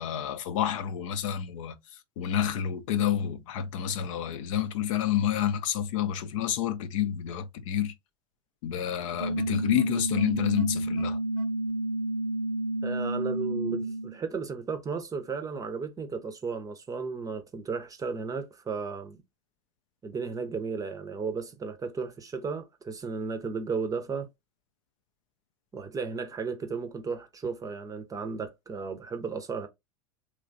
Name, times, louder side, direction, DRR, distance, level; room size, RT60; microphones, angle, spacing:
voice 1, 0.0-7.9 8.6-11.2, left 10 dB, 60° left, 0.5 m, -29 dB
sound 1, 9.2-14.2, right 1 dB, 75° right, 0.6 m, -30 dB
voice 2, 12.8-19.2 20.0-24.3 25.7-29.7, right 5 dB, 20° right, 0.6 m, -34 dB
3.0 x 2.3 x 2.5 m
hypercardioid pair, 85°, 18 cm